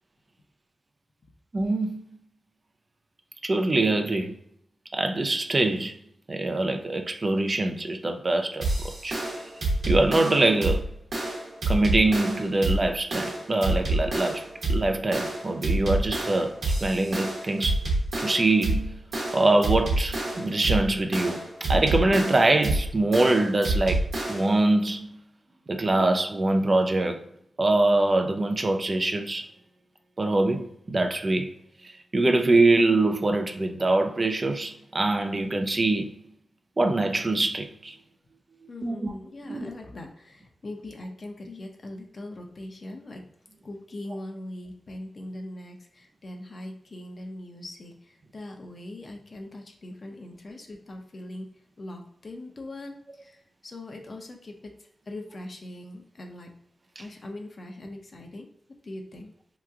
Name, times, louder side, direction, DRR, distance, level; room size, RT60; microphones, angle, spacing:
voice 1, 1.5-2.0 3.4-4.4 4.9-6.0 6.3-9.2 9.9-10.9 11.7-17.9 18.2-25.3 25.7-27.2 27.6-29.5 30.2-31.5 31.8-36.2 36.8-38.0 38.8-39.1 39.5-39.7, right 2 dB, 40° right, 0.4 m, -24 dB
sound 1, 8.6-24.6, right 2 dB, 75° right, 1.0 m, -28 dB
voice 2, 38.7-43.2 43.6-51.5 51.8-56.5 57.0-58.5 58.8-59.3, left 1 dB, 55° left, 0.7 m, -41 dB
2.9 x 2.3 x 3.5 m
cardioid pair, 55°, 0 cm